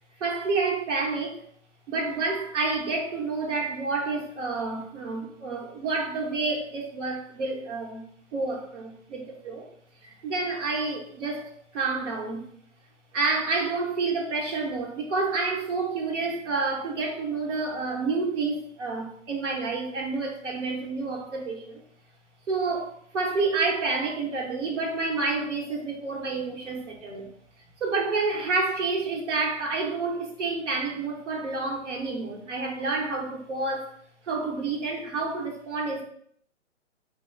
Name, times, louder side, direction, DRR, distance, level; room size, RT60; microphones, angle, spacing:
voice 1, 0.2-1.4 1.9-8.0 8.3-9.6 10.0-12.5 13.1-21.8 22.5-27.3 27.8-33.9 34.3-36.0, right 3 dB, 65° right, 0 dB, 1.1 m, -29 dB
3.3 x 2.2 x 3.1 m, 0.62 s
hypercardioid pair, 160°, 39 cm